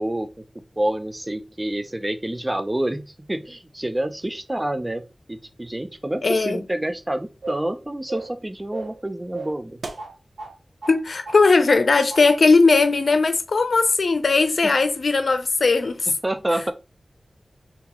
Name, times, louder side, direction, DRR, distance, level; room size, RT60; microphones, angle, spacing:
voice 1, 0.0-9.8 14.6-14.8 16.1-16.7, right 1 dB, 20° right, 0.6 m, -28 dB
voice 2, 6.2-6.6 10.9-16.1, left 3 dB, 70° left, 0.6 m, -18 dB
sound 1, 7.4-7.7 8.1-8.4 8.7-9.0 9.3-10.6 10.8-11.0 11.3-11.9 12.1-12.3, right 3 dB, 85° right, 0.6 m, -35 dB
2.9 x 2.9 x 3.6 m
cardioid pair, 45°, 0 cm